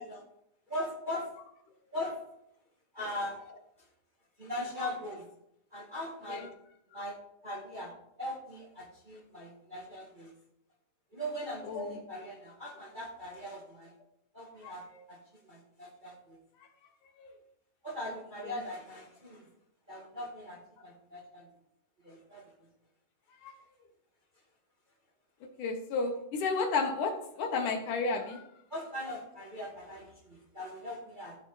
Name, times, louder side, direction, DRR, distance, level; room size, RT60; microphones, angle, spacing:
voice 1, 0.7-1.3 1.9-2.2 2.9-3.4 4.4-5.3 5.7-6.5 6.9-7.2 7.4-7.9 8.2-10.3 11.1-13.9 14.3-16.4 17.8-19.5 19.9-21.5 22.0-22.4 28.7-31.4, left 1 dB, 20° right, -3 dB, 1.7 m, -40 dB
voice 2, 11.6-12.0 14.6-14.7 17.2-17.3 18.5-18.6 23.4-23.5 25.6-28.5, left 4 dB, 75° left, 4 dB, 2.7 m, -32 dB
15.0 x 5.3 x 4.8 m, 0.76 s
omnidirectional pair, 3.7 m